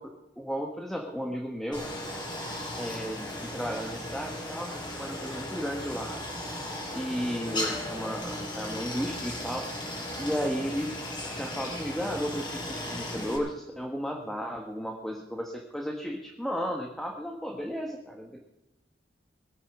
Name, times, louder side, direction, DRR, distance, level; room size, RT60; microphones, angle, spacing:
voice 1, 0.0-1.8 2.7-6.2 6.9-9.7 10.2-11.0 11.3-18.4, equal, ahead, 1 dB, 1.4 m, -34 dB
Stream, 1.7-13.4, left 1 dB, 25° left, 5.5 m, -36 dB
21.5 x 9.1 x 6.0 m, 0.93 s
head